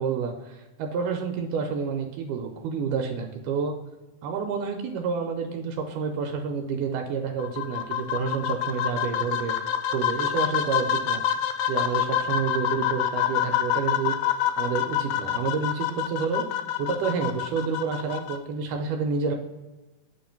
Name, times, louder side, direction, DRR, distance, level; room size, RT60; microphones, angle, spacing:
voice 1, 0.0-3.7 4.2-9.6 9.9-11.2 11.7-16.4 16.8-19.4, right 5 dB, 80° right, 4 dB, 2.2 m, -29 dB
sound 1, 7.4-18.4, left 10 dB, 80° left, 1.6 m, -27 dB
7.6 x 3.1 x 5.7 m, 1.1 s
omnidirectional pair, 3.7 m